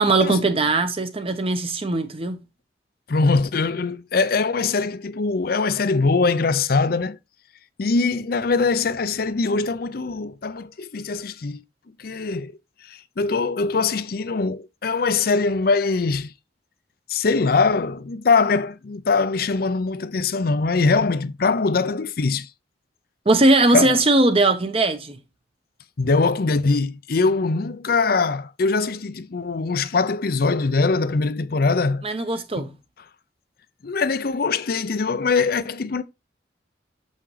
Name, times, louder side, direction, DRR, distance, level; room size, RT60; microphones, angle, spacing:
voice 1, 0.0-2.4 23.3-25.2 32.0-32.7, right 2 dB, 30° right, 0.9 m, -19 dB
voice 2, 3.1-7.2 7.8-11.6 12.0-12.5 12.8-16.3 17.1-22.5 23.7-24.0 26.0-32.0 32.6-32.7 33.8-36.0, left 4 dB, 55° left, 0.5 m, -22 dB
7.1 x 5.6 x 3.2 m
head